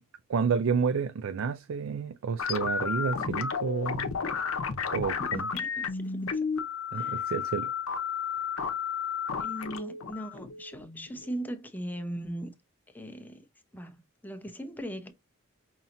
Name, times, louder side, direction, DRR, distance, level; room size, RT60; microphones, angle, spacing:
voice 1, 0.3-4.1 4.9-5.5 6.9-7.7, right 6 dB, 65° right, 0.4 m, -30 dB
sound 1, 2.4-11.3, left 6 dB, 70° left, 0.7 m, -32 dB
voice 2, 5.5-6.5 6.9-7.3 9.4-12.5 12.9-13.5 13.7-15.1, right 1 dB, 10° left, 0.7 m, -39 dB
5.5 x 2.9 x 2.6 m
head